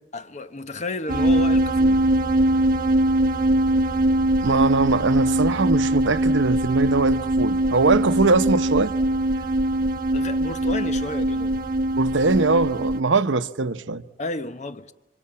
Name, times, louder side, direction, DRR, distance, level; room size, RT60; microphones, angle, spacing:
voice 1, 0.1-2.0 9.4-9.5 10.1-11.7 14.2-14.9, left 2 dB, 40° left, 1.0 m, -32 dB
sound 1, 1.1-13.0, right 1 dB, 50° right, 1.1 m, -22 dB
voice 2, 4.4-8.9 11.9-14.0, right 3 dB, 80° right, 0.9 m, -21 dB
27.5 x 25.0 x 8.7 m
head